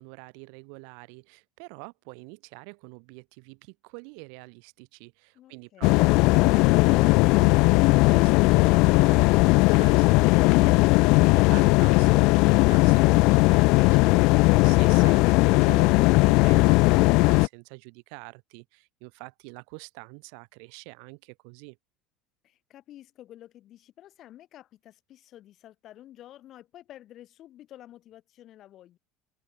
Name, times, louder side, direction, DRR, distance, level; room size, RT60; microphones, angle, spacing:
voice 1, 0.0-21.8, right 40 dB or more, 75° right, 2.9 m, -46 dB
voice 2, 5.3-6.0 22.4-29.0, left 13 dB, 45° left, 4.6 m, -50 dB
sound 1, 5.8-17.5, left 25 dB, 65° left, 0.4 m, -18 dB
open air
cardioid pair, 140°, 0 cm